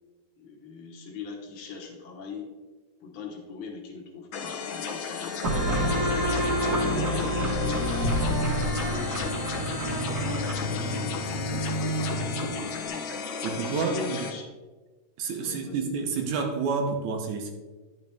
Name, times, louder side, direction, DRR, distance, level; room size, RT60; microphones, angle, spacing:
voice 1, 0.4-2.5 3.0-5.7 6.0-8.3 10.1-14.5 15.4-15.9, left 5 dB, 55° left, 0 dB, 1.8 m, -41 dB
sound 1, 4.3-14.3, left 6 dB, 70° left, 1.1 m, -34 dB
sound 2, 5.4-12.8, equal, 35° right, 2.1 m, -28 dB
voice 2, 13.4-14.3 15.2-17.5, right 5 dB, 85° right, 2 dB, 2.3 m, -29 dB
10.5 x 5.8 x 3.4 m, 1.3 s
omnidirectional pair, 3.3 m